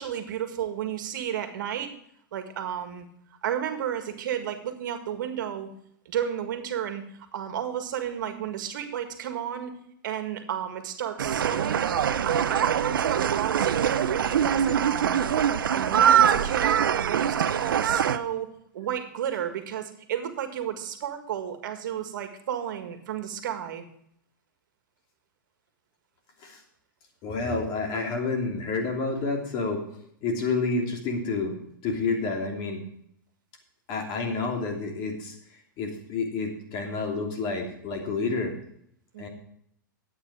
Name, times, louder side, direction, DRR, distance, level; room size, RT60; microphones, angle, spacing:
voice 1, 0.0-1.9 2.3-3.1 3.4-5.7 6.1-7.0 7.3-9.7 10.0-11.9 12.2-15.2 15.7-18.5 18.7-23.8 39.1-39.3, right 9 dB, 65° right, 7 dB, 1.8 m, -32 dB
sound 1, 11.2-18.2, right 8 dB, 80° right, 0.7 m, -23 dB
voice 2, 27.2-29.8 30.2-31.6 31.8-32.8 33.9-38.5 39.2-39.3, left 3 dB, 40° left, 2 dB, 3.1 m, -29 dB
12.0 x 8.9 x 4.8 m, 0.70 s
hypercardioid pair, 120°, 11 cm